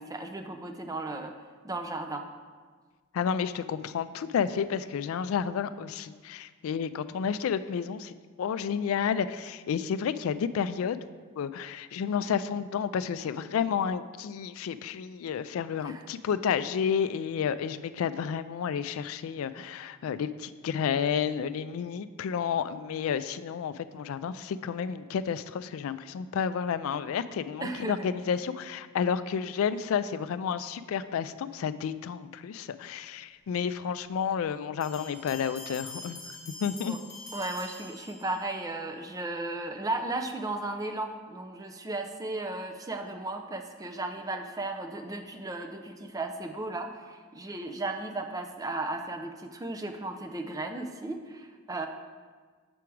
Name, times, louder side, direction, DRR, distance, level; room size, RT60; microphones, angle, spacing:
voice 1, 0.0-1.3 1.6-2.2 15.8-16.0 27.6-28.1 36.9-37.0 37.3-51.9, right 2 dB, 15° right, 5 dB, 0.5 m, -35 dB
voice 2, 3.1-11.0 11.4-36.2 36.6-37.0, left 7 dB, 70° left, 14 dB, 0.3 m, -31 dB
sound 1, 34.8-38.6, left 2 dB, 20° left, 1.7 m, -45 dB
7.0 x 4.8 x 4.5 m, 1.5 s
head